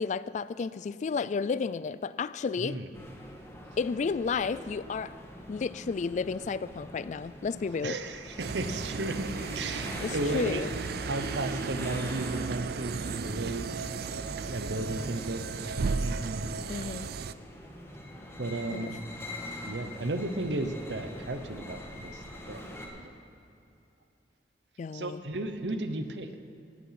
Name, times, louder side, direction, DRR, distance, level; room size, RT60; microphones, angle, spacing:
voice 1, 0.0-2.8 3.8-5.1 5.5-8.0 10.0-10.7 16.7-17.1 18.7-18.9 24.8-25.2, left 5 dB, 45° left, 17 dB, 0.3 m, -32 dB
voice 2, 2.6-2.9 7.8-9.3 9.5-10.6 11.0-13.7 14.5-15.5 16.0-16.5 18.4-18.9 19.6-23.1 24.9-26.3, right 2 dB, 85° right, 9 dB, 0.9 m, -34 dB
Entrance lobby M&S Whiteley, 2.9-22.9, left 1 dB, 15° left, 1.7 m, -44 dB
sound 1, 8.4-17.3, right 5 dB, 60° right, 0.4 m, -35 dB
17.5 x 8.5 x 5.8 m, 2.7 s
head